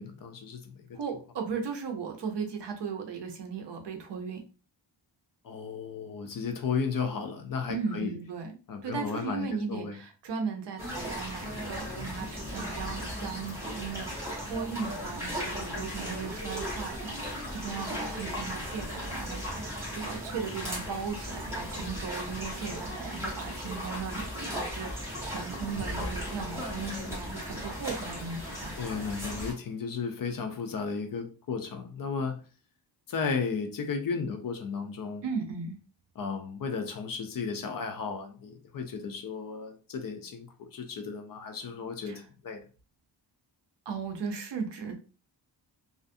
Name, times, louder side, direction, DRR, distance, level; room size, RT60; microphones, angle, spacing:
voice 1, 0.0-0.9 5.4-8.1 8.7-10.0 28.8-32.4 33.1-35.2 36.2-42.6, left 5 dB, 50° left, 6 dB, 0.4 m, -34 dB
voice 2, 0.9-4.4 7.7-8.6 8.8-28.9 35.2-35.8 42.1-42.2 43.9-45.0, right 5 dB, 65° right, 4 dB, 0.6 m, -37 dB
sound 1, 10.8-29.5, equal, 5° right, 0.9 m, -36 dB
2.5 x 2.4 x 2.5 m, 0.36 s
wide cardioid pair, 155°, 46 cm